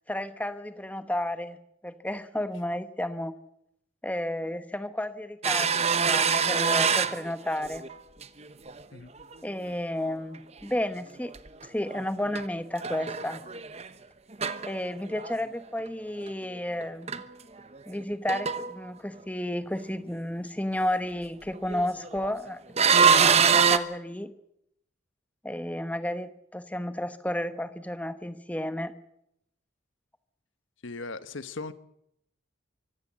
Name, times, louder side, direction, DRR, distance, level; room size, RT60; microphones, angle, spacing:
voice 1, 0.1-1.6 1.8-3.3 4.0-7.8 9.4-11.3 11.6-13.4 14.7-17.2 17.9-22.6 22.9-24.3 25.4-28.9, left 1 dB, 5° left, 11 dB, 1.0 m, -32 dB
sound 1, 5.4-7.9 8.2-8.8 9.2-9.3 11.3-12.5 12.8-13.9 14.3-15.4 16.3-16.4 16.8-16.9 17.1-17.2 17.6-18.0 18.3-18.8 21.5-22.3 22.8-23.8, right 6 dB, 35° right, 1.0 m, -24 dB
voice 2, 30.8-31.7, left 3 dB, 75° left, 13 dB, 1.1 m, -38 dB
24.0 x 16.0 x 7.5 m, 0.80 s
head